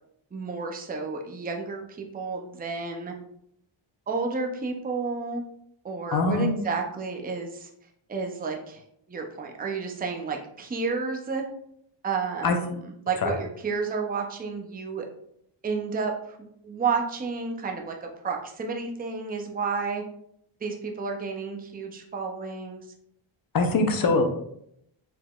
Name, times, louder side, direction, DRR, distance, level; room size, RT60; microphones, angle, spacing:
voice 1, 0.3-3.1 4.1-5.4 5.8-7.7 8.1-8.8 9.1-11.4 12.0-12.6 13.1-15.1 15.6-16.1 16.4-20.0 20.6-22.8, right 4 dB, 20° right, 2 dB, 0.4 m, -31 dB
voice 2, 6.1-6.7 12.4-12.6 13.2-13.4 23.5-24.2, left 3 dB, 45° left, 5 dB, 0.7 m, -23 dB
4.8 x 3.8 x 2.3 m, 0.73 s
wide cardioid pair, 160°, 49 cm